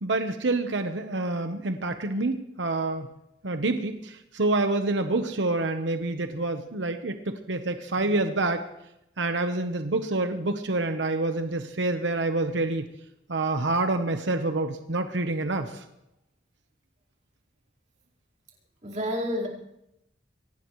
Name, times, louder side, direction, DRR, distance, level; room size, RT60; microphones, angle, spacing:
voice 1, 0.0-3.1 3.4-8.6 9.2-12.9 13.3-15.8, right 2 dB, 85° right, 7 dB, 1.1 m, -27 dB
voice 2, 18.8-19.5, equal, 40° right, -4 dB, 4.5 m, -29 dB
22.5 x 18.5 x 3.2 m, 0.85 s
head